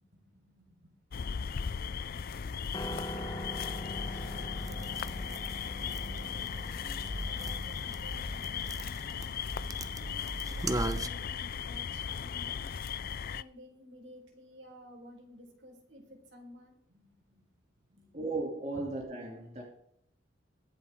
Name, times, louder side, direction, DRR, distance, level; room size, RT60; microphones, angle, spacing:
voice 1, 0.1-0.9 2.9-3.7 4.1-5.3 5.6-7.0 7.3-9.2 10.0-12.7 13.3-17.6 17.9-18.1 18.7-18.9, equal, 70° right, 4.4 m, -54 dB
sound 1, 1.1-13.4, left 7 dB, 50° left, 0.4 m, -37 dB
Piano, 2.7-11.0, equal, 25° left, 1.4 m, -45 dB
sound 2, 3.7-11.1, right 1 dB, 20° right, 0.9 m, -39 dB
voice 2, 18.1-19.6, right 2 dB, 40° right, 2.8 m, -36 dB
22.5 x 8.0 x 3.7 m
head